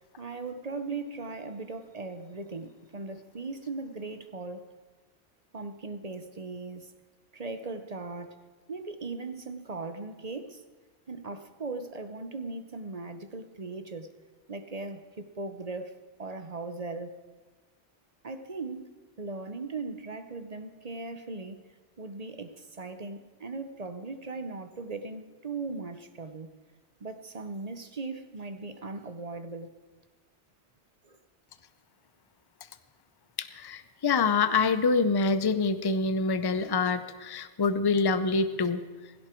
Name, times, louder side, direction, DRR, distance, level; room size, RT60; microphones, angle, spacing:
voice 1, 0.2-4.7 5.5-6.9 7.3-8.4 8.7-10.6 11.1-14.1 14.5-17.1 18.2-18.9 19.2-21.6 22.0-26.5 27.0-29.7 31.0-31.2, right 3 dB, 35° right, 9 dB, 0.8 m, -38 dB
voice 2, 33.4-38.8, left 4 dB, 25° left, 12 dB, 0.5 m, -26 dB
17.0 x 16.0 x 4.5 m, 1.4 s
omnidirectional pair, 1.2 m